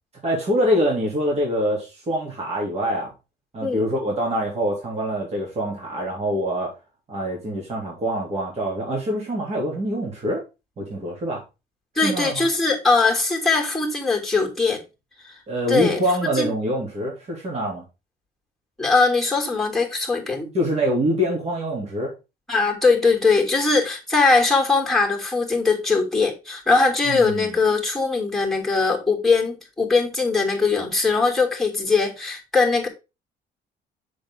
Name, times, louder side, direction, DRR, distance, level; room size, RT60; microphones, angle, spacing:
voice 1, 0.2-3.1 3.5-6.7 7.1-10.4 10.8-11.4 12.0-12.5 15.5-17.8 20.5-22.1 27.1-27.6, equal, 40° right, 3.1 m, -25 dB
voice 2, 11.9-14.8 15.2-15.3 15.7-16.0 16.3-16.5 18.8-20.5 22.5-32.9, left 4 dB, ahead, 3.0 m, -21 dB
7.5 x 6.5 x 3.7 m
cardioid pair, 110°, 17 cm